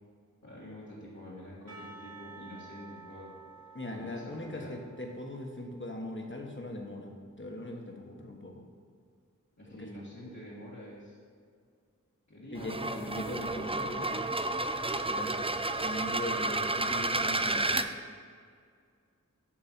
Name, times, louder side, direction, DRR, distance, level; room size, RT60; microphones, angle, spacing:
voice 1, 0.4-3.3 3.9-4.8 9.6-11.2 12.3-14.5 15.1-15.3, left 1 dB, 60° left, -9 dB, 1.8 m, -47 dB
Percussion / Church bell, 1.7-6.5, right 4 dB, 55° right, 1.9 m, -52 dB
voice 2, 3.7-7.1 7.4-8.6 9.7-9.9 12.5-14.1 15.1-15.3 15.8-17.8, left 1 dB, 35° left, 1 dB, 1.3 m, -40 dB
sound 1, 12.6-17.9, right 2 dB, 20° right, 0.4 m, -31 dB
8.7 x 6.6 x 4.4 m, 2.2 s
wide cardioid pair, 40°, 32 cm